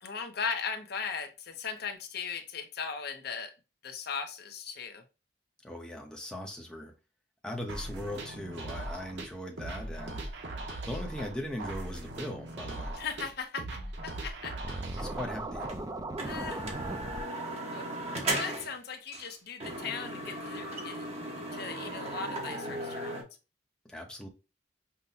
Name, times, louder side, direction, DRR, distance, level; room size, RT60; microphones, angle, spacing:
voice 1, 0.0-3.5 3.8-5.0 13.0-13.7 14.0-14.5 16.2-16.6 17.3-21.0 21.5-23.2, left 6 dB, 60° left, 0.7 m, -38 dB
voice 2, 5.6-6.9 7.4-10.3 10.9-13.0 15.0-15.7 23.9-24.3, left 1 dB, 5° left, 0.8 m, -39 dB
sound 1, 7.7-15.7, right 1 dB, 70° right, 1.0 m, -40 dB
Scratching (performance technique), 14.6-17.2, right 2 dB, 20° right, 0.5 m, -38 dB
sound 2, 15.7-15.8 16.2-18.8 19.1-19.3 19.6-23.2, right 1 dB, 35° right, 1.1 m, -36 dB
5.6 x 2.2 x 2.7 m
head